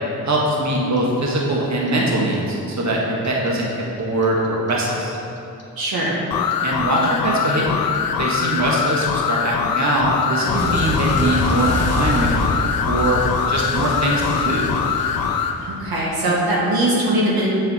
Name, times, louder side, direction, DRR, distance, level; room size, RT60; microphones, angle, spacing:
voice 1, 0.2-5.1 6.6-7.9 8.2-14.7, right 1 dB, 50° right, -3 dB, 1.4 m, -22 dB
Clock, 0.7-3.7 4.0-7.0 7.2-16.1, left 1 dB, 40° left, 1.7 m, -27 dB
voice 2, 5.8-6.2 15.6-17.5, right 1 dB, 75° right, -5 dB, 1.5 m, -20 dB
sound 1, 6.3-15.6, left 7 dB, 70° left, 0.5 m, -23 dB
7.3 x 5.7 x 4.1 m, 2.7 s
supercardioid pair, 40°, 37 cm